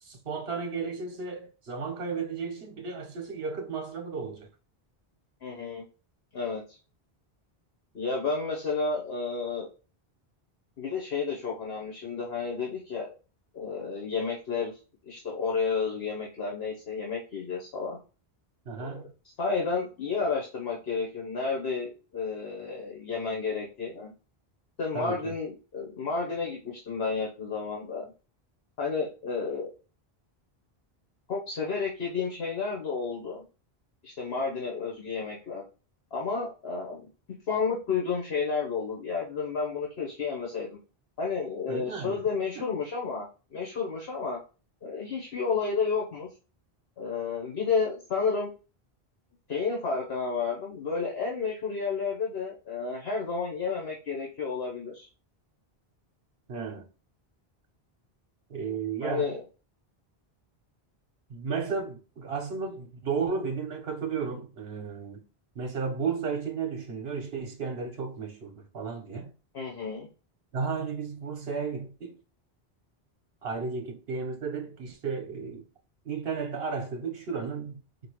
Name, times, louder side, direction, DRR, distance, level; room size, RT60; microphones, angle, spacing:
voice 1, 0.0-4.5 18.6-19.0 24.9-25.3 41.7-42.2 42.6-42.7 56.5-56.9 58.5-59.3 61.3-65.2 65.5-69.3 70.5-72.2 73.4-75.6 76.0-77.8, right 5 dB, 75° right, 1.3 m, -33 dB
voice 2, 5.4-5.8 6.3-6.8 7.9-9.7 10.8-13.1 13.5-14.7 15.1-18.0 18.8-19.0 19.4-24.1 24.8-28.1 28.8-29.7 31.3-33.4 34.0-35.6 36.1-37.1 37.5-40.8 41.2-44.4 44.8-46.3 47.0-48.5 49.5-55.1 59.0-59.4 69.5-70.1, left 5 dB, 80° left, 1.4 m, -31 dB
4.9 x 2.9 x 3.0 m
omnidirectional pair, 1.0 m